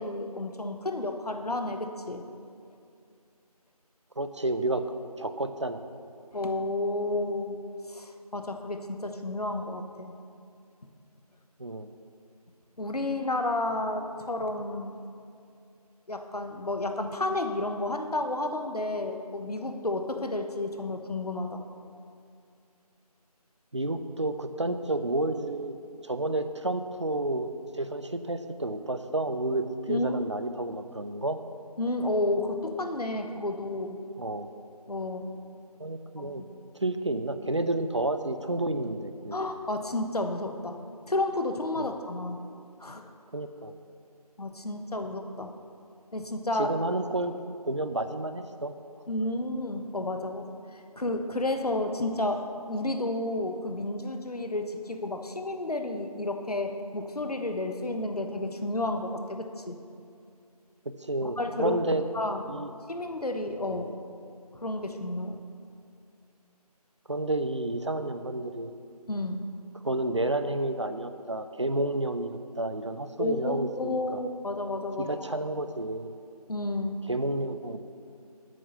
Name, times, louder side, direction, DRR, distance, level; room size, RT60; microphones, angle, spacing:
voice 1, 0.0-2.2 6.3-7.6 7.9-10.1 12.8-15.0 16.1-21.6 29.9-30.2 31.8-34.0 34.9-35.4 36.2-36.5 39.3-40.8 41.1-42.5 42.8-43.1 44.4-45.5 46.1-46.8 49.1-59.8 61.4-61.8 62.1-62.6 62.9-63.9 64.6-65.4 69.1-69.5 73.2-75.1 76.5-77.1, left 2 dB, 70° left, 6 dB, 1.1 m, -31 dB
voice 2, 4.2-4.8 5.2-5.8 11.6-11.9 23.7-25.8 26.0-27.5 27.8-31.4 34.2-34.5 35.8-36.4 36.8-39.4 41.8-41.9 43.3-43.7 46.6-47.3 47.7-48.7 60.9-62.0 62.5-62.7 63.7-64.0 67.1-68.7 69.8-74.2 75.0-76.1 77.1-77.8, right 2 dB, 45° right, 9 dB, 0.6 m, -30 dB
8.6 x 7.0 x 6.7 m, 2.5 s
figure-of-eight pair, 175°, 20 cm